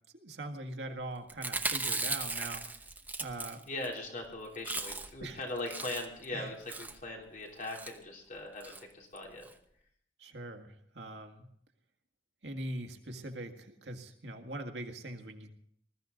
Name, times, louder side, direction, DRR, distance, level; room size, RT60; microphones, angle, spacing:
voice 1, 0.1-2.6 3.2-3.6 5.2-5.4 6.3-6.5 10.2-11.5 12.4-15.5, right 1 dB, 80° right, 4 dB, 1.8 m, -42 dB
Chewing mastication, 1.3-3.9 4.2-4.3 4.5-5.2 5.6-6.2 6.7-7.0 7.6-7.9 8.6-8.8 9.2-9.3 9.4-9.5, right 3 dB, 10° right, 0.8 m, -37 dB
voice 2, 3.7-9.5, left 2 dB, 50° left, -1 dB, 3.4 m, -40 dB
20.5 x 13.5 x 4.0 m, 0.66 s
head